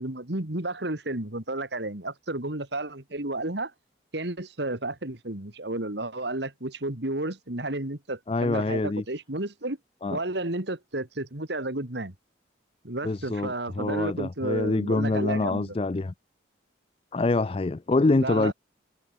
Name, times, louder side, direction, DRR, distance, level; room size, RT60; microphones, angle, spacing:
voice 1, 0.0-3.7 4.1-9.8 10.1-12.1 12.8-15.7 18.2-18.5, right 2 dB, 65° right, 2.5 m, -32 dB
voice 2, 8.3-9.0 10.0-10.2 13.0-16.1 17.1-18.5, left 3 dB, 30° left, 0.4 m, -25 dB
head